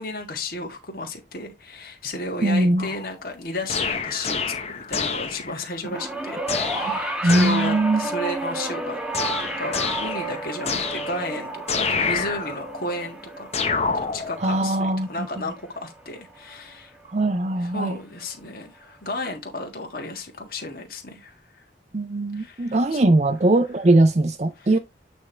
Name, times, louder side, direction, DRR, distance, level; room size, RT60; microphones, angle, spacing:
voice 1, 0.0-13.5 13.9-16.9 17.6-21.6 22.3-23.0 24.6-24.8, left 1 dB, 55° left, 1.7 m, -33 dB
voice 2, 2.4-2.9 6.9-8.0 14.4-15.1 17.1-18.0 21.9-24.8, right 2 dB, 40° right, 0.5 m, -20 dB
sound 1, 2.8-3.3 3.7-5.7 6.5-8.0 9.1-11.4 11.7-12.8 13.5-14.6, left 5 dB, 35° left, 0.9 m, -28 dB
sound 2, 5.8-16.3 17.3-17.4, right 2 dB, 5° right, 1.2 m, -32 dB
8.7 x 3.4 x 4.4 m
head